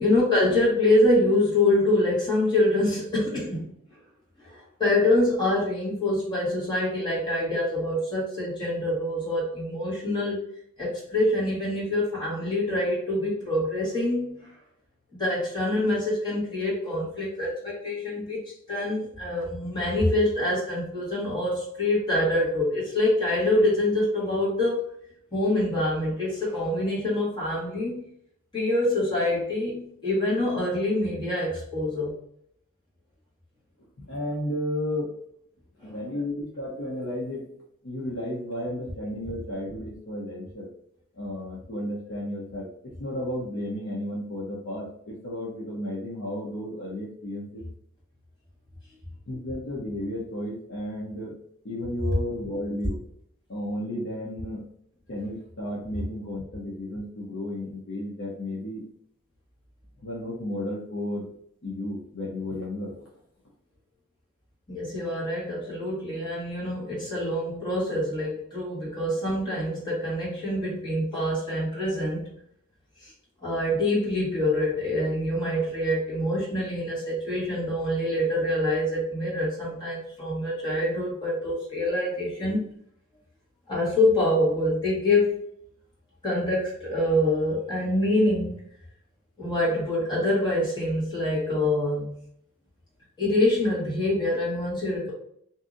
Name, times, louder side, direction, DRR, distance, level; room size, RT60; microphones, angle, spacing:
voice 1, 0.0-3.7 4.4-10.4 10.8-14.5 15.2-18.4 18.7-24.8 25.3-28.1 28.5-32.2 35.8-36.0 64.7-72.3 73.0-73.1 73.4-82.6 83.7-85.4 86.2-88.6 89.4-92.1 93.2-95.1, left 1 dB, 20° left, -8 dB, 1.4 m, -25 dB
voice 2, 34.1-35.1 35.8-37.5 37.8-40.7 41.2-42.7 43.0-47.6 49.3-51.3 51.6-53.0 53.5-54.6 55.1-58.9 60.0-61.3 61.6-63.0, left 1 dB, 55° left, -5 dB, 0.7 m, -33 dB
2.7 x 2.6 x 2.4 m, 0.68 s
head